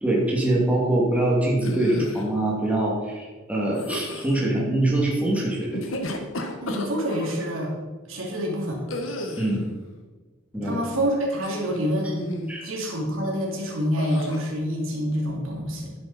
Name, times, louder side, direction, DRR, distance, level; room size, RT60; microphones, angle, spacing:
voice 1, 0.0-5.8 9.4-9.7 10.5-10.8 12.5-12.7, right 1 dB, 5° right, -4 dB, 2.7 m, -23 dB
sound 1, 1.6-2.3 3.7-4.4 5.6-7.4 8.9-9.6 11.4-11.9 12.2-12.6 14.0-14.4, left 1 dB, 75° left, 1.6 m, -32 dB
voice 2, 6.6-7.7 8.0-8.9 10.6-12.3 12.6-15.9, equal, 75° right, -1 dB, 3.0 m, -27 dB
11.5 x 9.8 x 4.4 m, 1.3 s
head